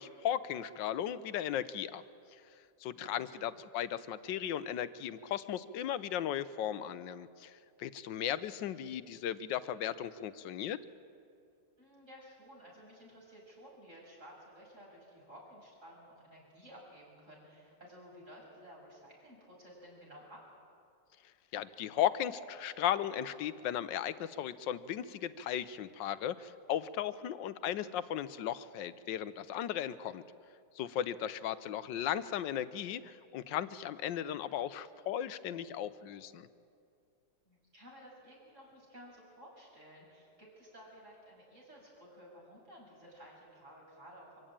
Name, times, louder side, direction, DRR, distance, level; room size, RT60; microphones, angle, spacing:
voice 1, 0.0-2.0 2.8-10.8 21.5-30.2 30.8-36.5, left 10 dB, 90° left, 15 dB, 1.4 m, -36 dB
voice 2, 2.9-3.5 11.8-20.4 31.6-31.7 37.4-44.5, equal, 40° right, -3 dB, 6.9 m, -55 dB
24.5 x 15.5 x 8.9 m, 2.4 s
omnidirectional pair, 1.9 m